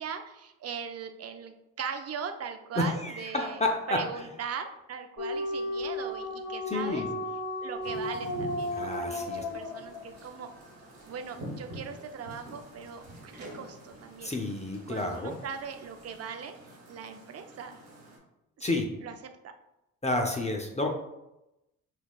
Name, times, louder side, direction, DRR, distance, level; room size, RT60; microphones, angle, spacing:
voice 1, 0.0-3.6 3.9-7.1 7.6-10.5 11.1-14.3 14.9-16.5 16.9-17.7 18.6-19.5, right 6 dB, 40° right, 7 dB, 0.5 m, -39 dB
voice 2, 2.8-4.0 6.7-7.1 8.7-9.5 14.2-15.3 18.6-18.9 20.0-21.0, left 2 dB, 20° left, 2 dB, 0.6 m, -30 dB
sound 1, 5.2-10.4, left 1 dB, 45° left, 1.4 m, -34 dB
sound 2, 7.8-18.2, equal, 85° right, 1.1 m, -47 dB
5.7 x 2.4 x 2.3 m, 0.93 s
supercardioid pair, 55°, 38 cm